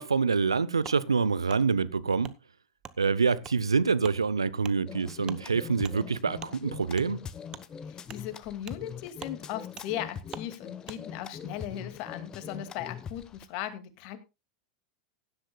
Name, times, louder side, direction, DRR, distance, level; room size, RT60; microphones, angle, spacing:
voice 1, 0.0-2.3 3.0-7.2, right 5 dB, 90° right, 0.6 m, -26 dB
Wood, 0.8-1.0 1.5-1.6 2.2-2.4 2.8-3.0 3.4-3.6 4.0-4.2 4.6-4.8 5.2-5.4 5.8-6.0 6.4-6.5 6.9-7.1 7.5-7.6 8.1-8.2 8.7-8.8 9.2-9.4 9.8-9.9 10.3-10.5 10.8-11.0, right 8 dB, 30° right, 1.0 m, -44 dB
sound 1, 4.9-13.5, left 7 dB, 30° left, 1.1 m, -42 dB
voice 2, 7.9-14.2, left 11 dB, 50° left, 2.2 m, -38 dB
16.5 x 11.5 x 2.3 m
hypercardioid pair, 90°, 3 cm